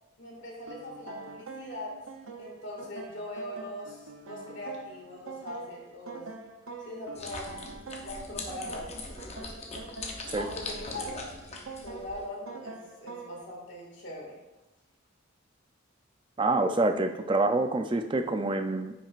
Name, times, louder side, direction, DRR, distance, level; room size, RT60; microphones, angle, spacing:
voice 1, 0.2-2.0 2.4-6.2 6.8-7.6 8.0-9.6 10.4-11.4 11.8-14.4, left 1 dB, 60° left, -2 dB, 2.0 m, -41 dB
sound 1, 0.7-13.5, right 3 dB, 85° right, 0.7 m, -45 dB
sound 2, 7.1-12.2, left 3 dB, 30° left, 0.8 m, -41 dB
voice 2, 16.4-18.9, right 2 dB, 25° right, 8 dB, 0.4 m, -26 dB
9.7 x 6.0 x 2.5 m, 1.0 s
head